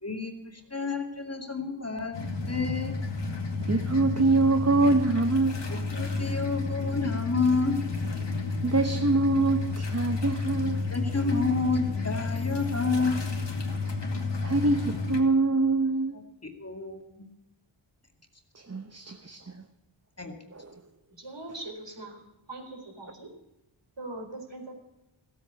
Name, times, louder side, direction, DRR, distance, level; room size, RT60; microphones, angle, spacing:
voice 1, 0.0-3.0 5.7-7.8 10.9-13.4 16.4-17.0 20.2-20.3, left 4 dB, 30° left, 2.3 m, -29 dB
sound 1, 2.1-15.2, left 3 dB, 60° left, 2.4 m, -31 dB
voice 2, 3.6-5.9 8.6-10.8 14.4-16.2 18.5-19.6 20.5-20.8, right 3 dB, 30° right, 1.1 m, -25 dB
voice 3, 21.2-22.2 22.5-23.3 24.0-24.7, right 2 dB, 60° right, 4.3 m, -41 dB
15.5 x 8.6 x 8.3 m
wide cardioid pair, 60°, 48 cm